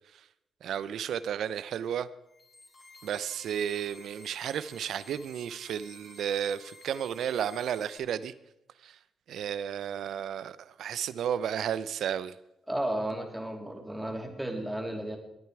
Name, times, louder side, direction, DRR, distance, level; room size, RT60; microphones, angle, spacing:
voice 1, 0.6-2.1 3.0-8.3 8.8-9.0 9.3-12.3, right 9 dB, 75° right, 16 dB, 0.6 m, -33 dB
sound 1, 2.2-8.0, left 2 dB, 30° left, 4.3 m, -53 dB
voice 2, 12.7-15.2, right 1 dB, 5° right, 3 dB, 3.0 m, -33 dB
20.0 x 9.3 x 4.8 m, 0.87 s
cardioid pair, 75°, 0 cm